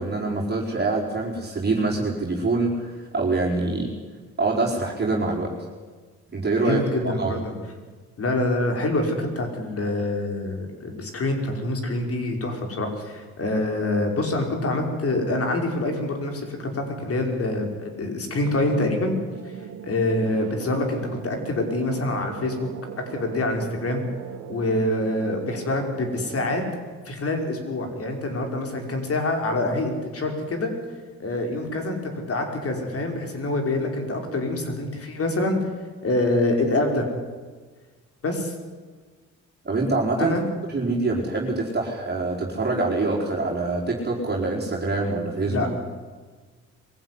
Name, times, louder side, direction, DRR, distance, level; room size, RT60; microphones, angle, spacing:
voice 1, 0.0-3.9 4.4-5.5 6.3-7.4 39.6-40.4 40.7-45.6, right 3 dB, 35° right, -3 dB, 4.7 m, -25 dB
voice 2, 6.6-7.5 8.2-19.2 19.8-22.7 23.1-24.0 24.5-26.6 27.1-30.7 31.2-35.6 36.0-37.0 38.2-38.5 40.2-40.5 45.4-45.7, left 2 dB, 50° left, 4 dB, 5.4 m, -26 dB
sound 1, 18.3-26.7, right 9 dB, 75° right, 1.6 m, -39 dB
22.5 x 15.5 x 9.9 m, 1.4 s
cardioid pair, 90°, 30 cm